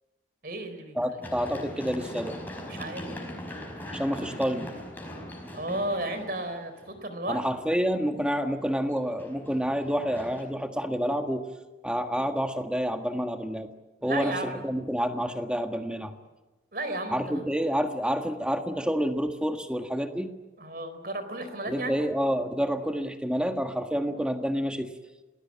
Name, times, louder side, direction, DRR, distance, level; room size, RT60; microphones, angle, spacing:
voice 1, 0.4-1.2 2.7-3.0 5.5-7.4 14.0-14.6 16.7-17.4 20.6-22.0, right 1 dB, 50° right, 9 dB, 4.3 m, -33 dB
voice 2, 0.9-2.4 3.9-4.7 7.3-11.5 11.8-13.7 14.0-16.1 17.1-20.3 21.7-24.9, equal, 5° right, 5 dB, 1.6 m, -28 dB
Run, 1.2-7.1 8.9-10.4, equal, 10° left, 5.0 m, -40 dB
28.5 x 19.5 x 8.7 m, 1.1 s
head